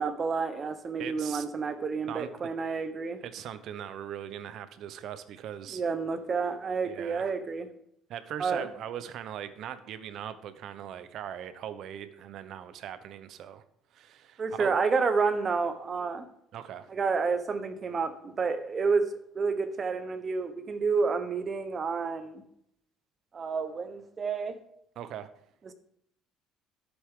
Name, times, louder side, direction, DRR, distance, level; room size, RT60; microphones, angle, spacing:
voice 1, 0.0-3.2 5.7-7.7 8.4-8.7 14.4-16.3 16.9-22.4 23.3-24.6, right 5 dB, 30° right, 9 dB, 1.1 m, -29 dB
voice 2, 1.0-1.4 2.1-2.5 3.2-5.8 6.8-7.3 8.1-13.6 13.9-14.7 16.5-16.9 25.0-25.3, right 10 dB, 60° right, 13 dB, 0.8 m, -40 dB
11.5 x 8.2 x 3.8 m, 0.70 s
cardioid pair, 130°, 0 cm